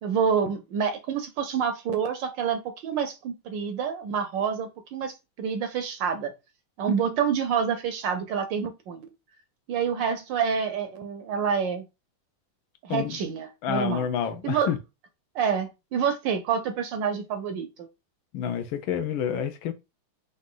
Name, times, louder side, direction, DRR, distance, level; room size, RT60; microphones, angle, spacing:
voice 1, 0.0-6.3 6.8-9.1 9.7-11.9 12.8-14.0 14.4-14.7 15.3-17.7, right 6 dB, 75° right, 1.1 m, -27 dB
voice 2, 13.6-14.8 18.3-19.7, left 8 dB, 75° left, 1.3 m, -28 dB
3.9 x 2.6 x 3.7 m
omnidirectional pair, 2.3 m